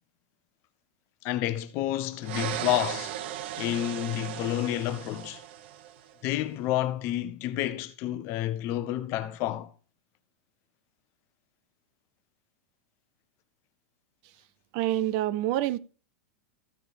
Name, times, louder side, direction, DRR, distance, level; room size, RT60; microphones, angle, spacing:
voice 1, 1.2-3.1 3.6-5.4 6.2-9.7, left 13 dB, 35° left, 0.9 m, -29 dB
sound 1, 2.2-6.1, right 11 dB, 55° right, 0.9 m, -36 dB
voice 2, 14.7-15.8, right 14 dB, 40° right, 0.5 m, -27 dB
14.5 x 5.1 x 4.7 m
supercardioid pair, 160°, 7 cm